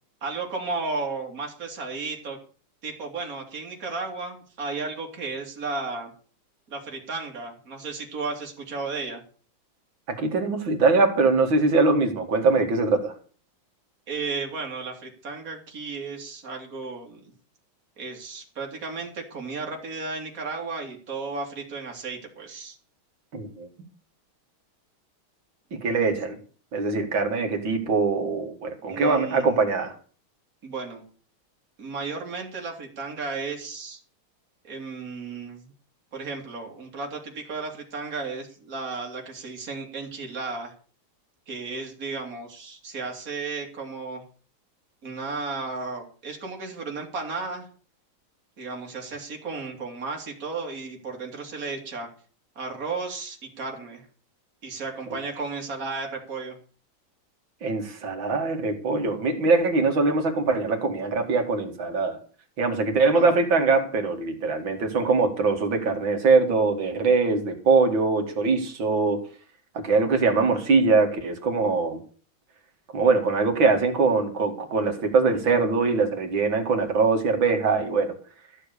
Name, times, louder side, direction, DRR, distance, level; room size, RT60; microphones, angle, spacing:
voice 1, 0.2-2.4 2.8-6.1 6.7-9.2 14.1-17.3 18.0-22.8 28.9-29.6 30.6-31.0 31.8-34.0 34.6-35.7 36.1-40.7 41.5-44.2 45.0-47.7 48.6-52.1 52.5-54.0 54.6-56.6 63.1-63.4, right 4 dB, 40° right, 1 dB, 3.1 m, -34 dB
voice 2, 10.1-13.1 23.3-23.7 25.7-26.4 26.7-29.9 57.6-62.2 62.6-69.2 69.7-72.0 72.9-78.1, right 4 dB, 65° right, 4 dB, 3.0 m, -22 dB
14.5 x 7.4 x 6.7 m, 0.41 s
omnidirectional pair, 2.3 m